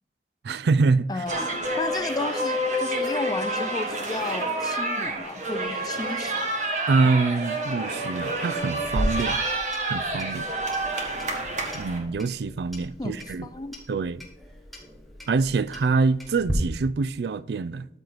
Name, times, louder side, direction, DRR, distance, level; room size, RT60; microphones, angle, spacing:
voice 1, 0.4-1.1 6.9-9.4 9.8-10.5 11.7-13.5 13.9-14.2 15.3-17.9, right 4 dB, 70° right, 0.4 m, -25 dB
voice 2, 1.1-6.5 13.0-13.8, left 2 dB, 20° left, 0.4 m, -33 dB
sound 1, 1.3-12.0, right 1 dB, 45° right, 1.5 m, -28 dB
Clock, 8.8-16.5, equal, ahead, 1.3 m, -36 dB
12.5 x 4.5 x 4.0 m
head